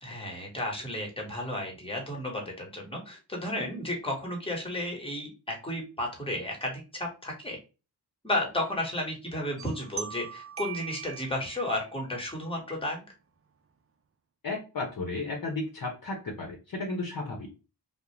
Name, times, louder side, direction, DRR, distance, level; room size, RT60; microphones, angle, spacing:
voice 1, 0.0-7.6 8.2-13.0, left 1 dB, 15° left, 0 dB, 1.2 m, -33 dB
sound 1, 9.6-12.0, right 8 dB, 35° right, 0.4 m, -41 dB
voice 2, 14.4-17.5, left 3 dB, 55° left, 0 dB, 0.8 m, -34 dB
2.4 x 2.0 x 3.0 m, 0.31 s
cardioid pair, 60°, 41 cm